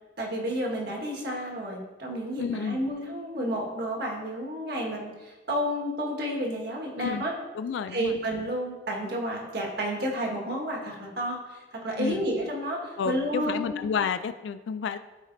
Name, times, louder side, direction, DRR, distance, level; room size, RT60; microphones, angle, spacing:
voice 1, 0.2-7.3 7.9-13.7, equal, 55° right, -1 dB, 1.6 m, -31 dB
voice 2, 2.4-2.8 7.0-7.2 7.5-8.1 12.0-12.3 13.0-15.0, left 6 dB, 75° left, 11 dB, 0.3 m, -30 dB
13.5 x 5.1 x 2.7 m, 1.2 s
head